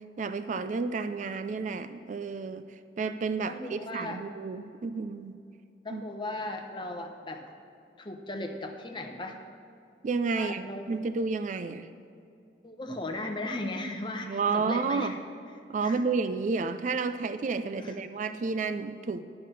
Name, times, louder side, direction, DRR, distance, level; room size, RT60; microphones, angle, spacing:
voice 1, 0.0-5.4 5.9-6.0 10.0-11.9 14.2-15.2 15.7-19.2, right 4 dB, 45° right, 11 dB, 0.3 m, -31 dB
voice 2, 3.5-4.2 5.8-7.5 8.0-9.4 10.4-10.8 12.6-15.2 15.8-16.0 17.8-17.9, left 2 dB, 25° left, 3 dB, 0.9 m, -37 dB
11.0 x 5.8 x 6.6 m, 2.6 s
head